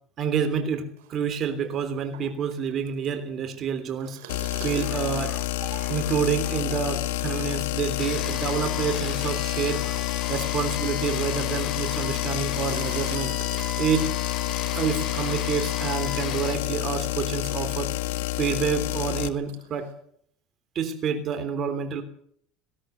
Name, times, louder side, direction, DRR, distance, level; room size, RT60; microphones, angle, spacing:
voice 1, 0.2-4.2 4.6-13.4 13.8-14.1 14.7-17.9 18.4-19.9 20.7-22.0, right 6 dB, 40° right, 9 dB, 3.3 m, -28 dB
sound 1, 1.0-16.8 17.0-19.9, right 10 dB, 85° right, 5.7 m, -47 dB
sound 2, 4.3-19.3, left 17 dB, 90° left, 1.6 m, -29 dB
sound 3, 8.0-16.6, left 7 dB, 30° left, 3.5 m, -36 dB
18.5 x 17.5 x 8.0 m, 0.64 s
supercardioid pair, 120°, 0 cm